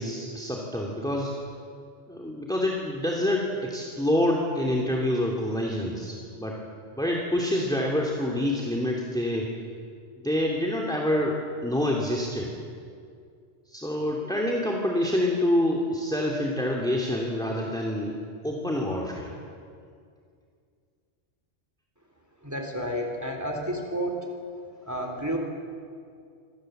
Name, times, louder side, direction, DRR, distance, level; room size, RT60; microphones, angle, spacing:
voice 1, 0.0-1.3 2.1-6.6 7.0-9.5 10.2-12.5 13.7-19.3, left 1 dB, 5° left, -2 dB, 2.8 m, -27 dB
voice 2, 22.4-24.2 24.9-25.4, equal, 15° right, 3 dB, 3.4 m, -30 dB
27.5 x 25.5 x 7.9 m, 2.3 s
omnidirectional pair, 1.2 m